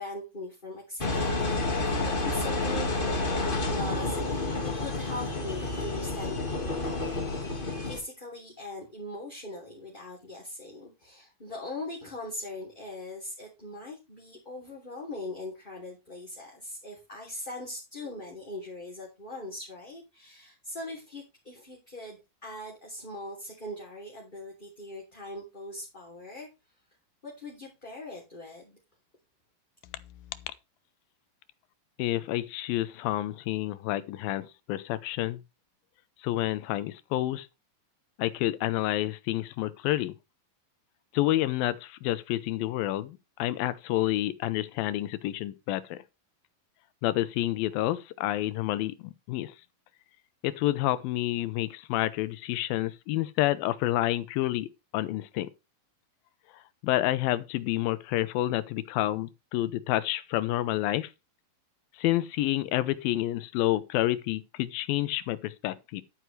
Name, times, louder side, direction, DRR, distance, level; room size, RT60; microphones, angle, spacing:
voice 1, 0.0-7.2 7.9-26.5 27.2-28.8, left 1 dB, 15° left, 2.7 m, -41 dB
Engine, 1.0-8.0, left 2 dB, 40° left, 0.7 m, -30 dB
voice 2, 32.0-35.4 36.2-37.5 38.2-40.1 41.1-46.0 47.0-49.5 50.4-55.5 56.8-61.1 62.0-66.0, left 15 dB, 85° left, 2.6 m, -29 dB
11.5 x 9.3 x 3.2 m
omnidirectional pair, 4.1 m